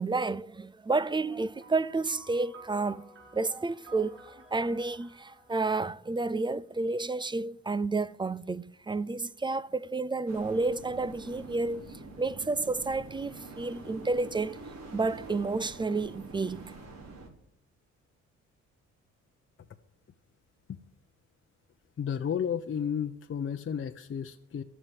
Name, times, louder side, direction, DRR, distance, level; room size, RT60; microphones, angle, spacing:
voice 1, 0.0-11.8 12.2-14.6 14.9-16.6, right 3 dB, 15° right, 0.5 m, -31 dB
sound 1, 0.9-6.7, right 1 dB, 45° right, 4.1 m, -54 dB
sound 2, 10.3-17.3, right 3 dB, 60° right, 3.7 m, -46 dB
voice 2, 22.0-24.6, left 8 dB, 40° left, 0.8 m, -32 dB
12.5 x 7.7 x 9.9 m
cardioid pair, 90°, 30 cm